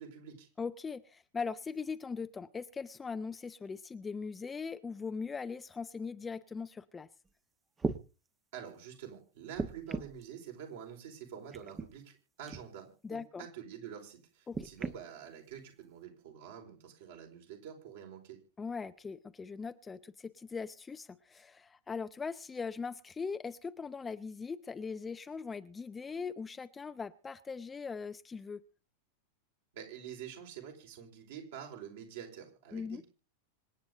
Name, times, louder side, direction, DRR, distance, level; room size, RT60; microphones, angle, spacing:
voice 1, 0.0-0.5 8.5-18.4 29.7-33.0, right 8 dB, 55° right, 2 dB, 4.8 m, -47 dB
voice 2, 0.6-7.1 13.0-13.5 14.5-14.7 18.6-28.6 32.7-33.0, left 5 dB, 15° left, 12 dB, 0.7 m, -40 dB
sound 1, 7.3-7.4 7.8-8.0 9.5-10.2 11.5-11.9 12.5-12.7 14.5-15.0 15.9-16.0, right 4 dB, 15° right, 1.2 m, -36 dB
26.0 x 9.2 x 3.9 m, 0.35 s
figure-of-eight pair, 90°, 0 cm